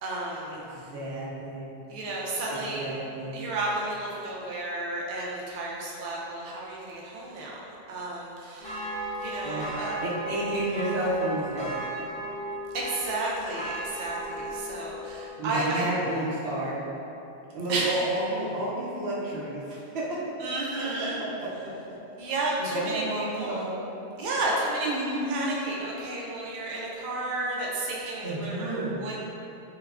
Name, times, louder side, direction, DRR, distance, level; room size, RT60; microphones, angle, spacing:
voice 1, 0.0-0.9 1.9-2.9 3.3-7.6 7.9-8.9 9.2-10.0 12.7-15.9 17.7-18.0 20.4-21.2 22.2-23.6 24.2-29.2, right 2 dB, 60° right, -4 dB, 0.6 m, -32 dB
voice 2, 0.5-1.8 2.5-3.5 9.4-9.7 10.0-11.8 15.4-16.8 17.5-20.2 20.8-21.7 22.6-23.9 24.8-25.5 28.2-29.0, right 1 dB, 85° right, -5 dB, 0.9 m, -31 dB
sound 1, 8.6-15.3, right 1 dB, 5° left, 0.6 m, -36 dB
3.2 x 2.9 x 2.4 m, 2.8 s
omnidirectional pair, 1.1 m